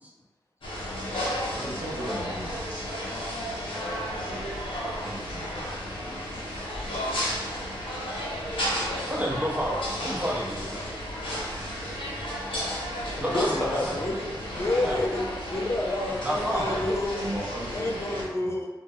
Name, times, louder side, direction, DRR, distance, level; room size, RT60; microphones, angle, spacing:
sound 1, 0.6-18.2, equal, 80° left, 0.7 m, -33 dB
voice 1, 1.5-2.6 4.9-5.6 17.2-18.6, right 1 dB, 90° right, -11 dB, 1.1 m, -37 dB
voice 2, 2.7-3.1 9.0-10.7 13.1-14.0 14.7-15.0 16.2-16.9, equal, 15° right, -3 dB, 0.7 m, -30 dB
voice 3, 12.2-12.9 13.3-14.2 14.5-15.2 15.5-17.2 17.7-18.7, left 2 dB, 30° left, 0 dB, 0.4 m, -29 dB
2.2 x 2.1 x 2.7 m, 1.2 s
cardioid pair, 40°, 9 cm